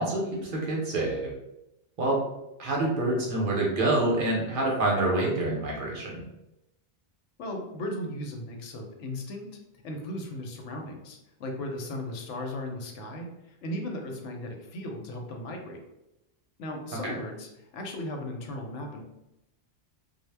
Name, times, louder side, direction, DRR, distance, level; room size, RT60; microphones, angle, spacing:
voice 1, 0.0-1.3 2.0-2.2 2.6-6.2 17.0-17.1, right 2 dB, 55° right, -2 dB, 0.7 m, -27 dB
voice 2, 7.4-9.5 9.8-15.8 16.6-19.0, left 1 dB, 85° left, 2 dB, 0.9 m, -36 dB
2.1 x 2.0 x 3.2 m, 0.90 s
omnidirectional pair, 1.2 m